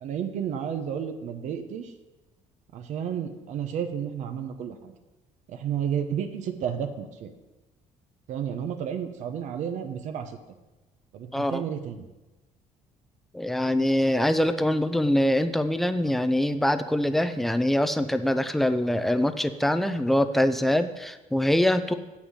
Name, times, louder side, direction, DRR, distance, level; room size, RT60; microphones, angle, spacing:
voice 1, 0.0-1.9 2.7-4.9 5.5-7.3 8.3-10.4 11.1-12.1, right 8 dB, 60° right, 7 dB, 0.9 m, -32 dB
voice 2, 11.3-11.6 13.3-21.9, left 1 dB, ahead, 10 dB, 0.5 m, -24 dB
8.2 x 6.0 x 7.4 m, 1.1 s
cardioid pair, 140°, 14 cm